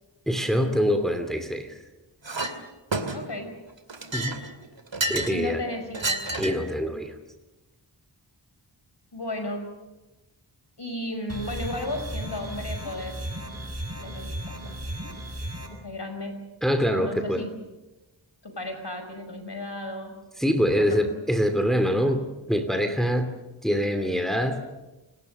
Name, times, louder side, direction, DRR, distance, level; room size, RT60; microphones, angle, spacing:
voice 1, 0.3-1.8 4.1-4.4 5.1-5.6 6.4-7.1 16.6-17.4 20.4-23.3 23.6-24.6, equal, ahead, 7 dB, 2.6 m, -24 dB
Chink clink, 2.2-2.5 2.9-3.4 3.9-5.4 5.9-6.7, right 2 dB, 70° right, 2.6 m, -30 dB
voice 2, 3.1-3.6 5.3-6.4 9.1-9.8 10.8-13.2 14.0-14.8 15.7-16.4 17.0-17.6 18.4-20.2 20.8-21.0, left 1 dB, 60° left, 6 dB, 5.6 m, -34 dB
sound 1, 11.3-15.7, right 1 dB, 30° right, 6.8 m, -35 dB
29.5 x 19.5 x 6.7 m, 1.1 s
wide cardioid pair, 45°, 46 cm